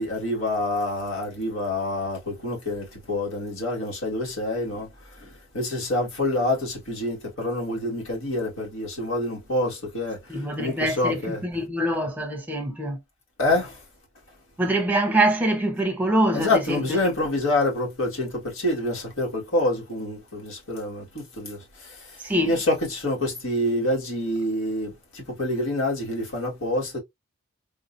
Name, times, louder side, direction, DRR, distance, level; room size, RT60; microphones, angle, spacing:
voice 1, 0.0-4.9 5.2-5.3 5.5-10.2 10.6-11.4 13.4-13.8 16.3-21.6 22.4-27.0, left 1 dB, 80° left, 2.0 m, -26 dB
voice 2, 10.3-13.0 14.6-17.0 22.2-22.6, right 1 dB, 10° right, 0.8 m, -24 dB
3.8 x 2.8 x 2.6 m
head